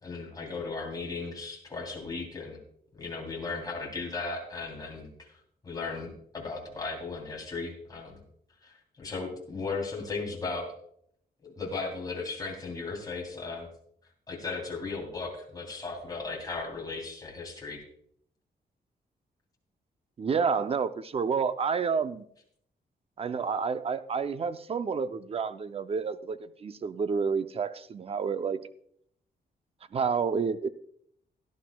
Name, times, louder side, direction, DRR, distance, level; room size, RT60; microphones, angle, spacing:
voice 1, 0.0-2.6 2.9-5.3 5.6-8.2 8.6-10.7 11.4-13.7 14.3-17.8, left 4 dB, 20° left, -1 dB, 3.2 m, -36 dB
voice 2, 20.2-22.2 23.2-28.6 29.9-30.7, right 5 dB, 35° right, 12 dB, 0.5 m, -29 dB
17.5 x 11.0 x 2.3 m, 0.66 s
wide cardioid pair, 175°, 17 cm